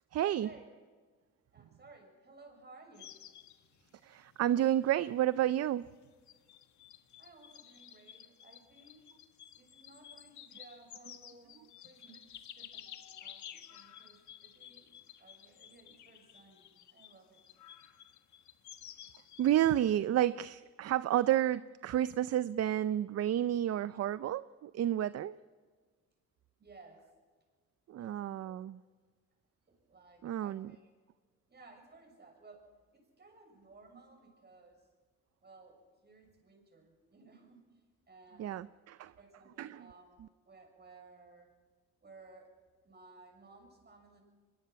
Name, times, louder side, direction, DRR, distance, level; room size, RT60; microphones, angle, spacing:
voice 1, 0.1-0.5 4.0-5.9 19.4-25.3 27.9-28.8 30.2-30.7 38.4-39.1 39.6-39.9, right 12 dB, 55° right, 0.6 m, -31 dB
voice 2, 1.5-3.1 7.2-9.1 9.6-12.9 13.2-14.9 15.2-17.4 26.6-27.1 28.0-28.6 29.7-30.9 31.5-34.9 35.4-37.6 38.1-38.6 39.2-40.2 40.4-41.5 42.0-42.5 42.8-44.2, right 3 dB, 35° right, 6.6 m, -58 dB
sound 1, 3.0-19.8, left 10 dB, 70° left, 1.5 m, -54 dB
23.5 x 21.5 x 5.9 m
cardioid pair, 90°, 30 cm